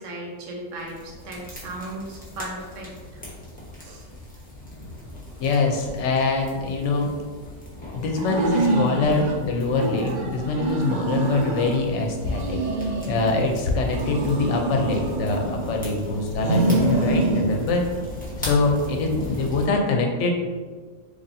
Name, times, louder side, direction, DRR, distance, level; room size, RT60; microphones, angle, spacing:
voice 1, 0.0-3.2 3.8-4.1 19.2-19.4, right 1 dB, 85° right, -1 dB, 1.1 m, -36 dB
sound 1, 0.7-19.7, left 1 dB, 10° left, 0.9 m, -39 dB
voice 2, 5.4-7.1 7.9-12.6 13.1-17.8 18.4-20.3, left 3 dB, 75° left, 2 dB, 0.9 m, -24 dB
sound 2, 8.1-9.4 9.8-11.8 12.2-13.5 13.9-15.8 16.3-17.5, right 2 dB, 55° right, 0.5 m, -26 dB
4.0 x 3.2 x 2.6 m, 1.5 s
omnidirectional pair, 1.3 m